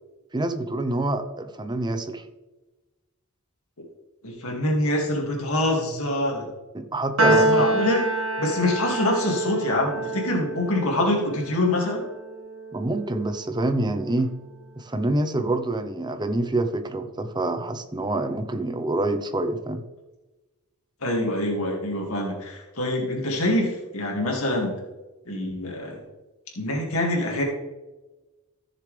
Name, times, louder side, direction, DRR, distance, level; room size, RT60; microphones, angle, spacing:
voice 1, 0.3-2.2 6.7-7.7 12.7-14.3 14.8-19.8, right 2 dB, 20° right, 8 dB, 0.8 m, -26 dB
voice 2, 4.2-6.5 7.2-8.0 8.4-12.0 21.0-24.7 25.3-26.0 26.6-27.4, left 1 dB, 65° left, -1 dB, 2.4 m, -25 dB
Piano, 7.2-13.7, right 2 dB, 65° right, 1.8 m, -27 dB
15.0 x 6.8 x 3.4 m, 1.1 s
head